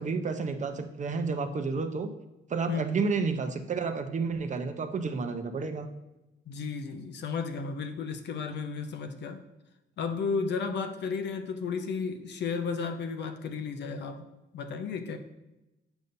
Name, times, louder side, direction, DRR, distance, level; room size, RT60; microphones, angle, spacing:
voice 1, 0.0-2.1 2.5-5.9, right 4 dB, 40° right, 8 dB, 0.6 m, -31 dB
voice 2, 6.5-9.4 10.0-14.3 14.5-15.2, left 5 dB, 60° left, 7 dB, 0.7 m, -33 dB
8.0 x 5.3 x 2.6 m, 0.96 s
cardioid pair, 90°, 20 cm